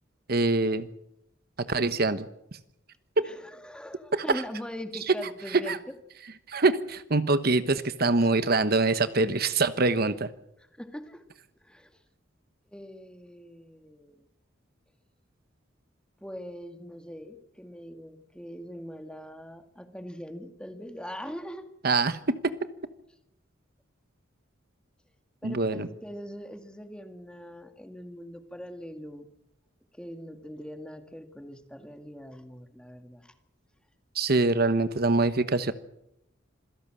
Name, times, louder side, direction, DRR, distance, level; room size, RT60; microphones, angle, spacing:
voice 1, 0.3-0.9 1.6-2.3 3.2-3.3 4.1-4.2 5.7-5.8 6.5-10.3 21.8-22.5 25.4-25.9 34.1-35.7, right 3 dB, 55° right, 12 dB, 1.1 m, -24 dB
voice 2, 3.2-5.8 10.6-11.2 11.6-11.9 12.7-14.3 16.2-21.7 25.4-29.3 29.9-33.3, equal, 5° left, 7 dB, 1.8 m, -42 dB
26.5 x 17.0 x 7.6 m, 0.81 s
head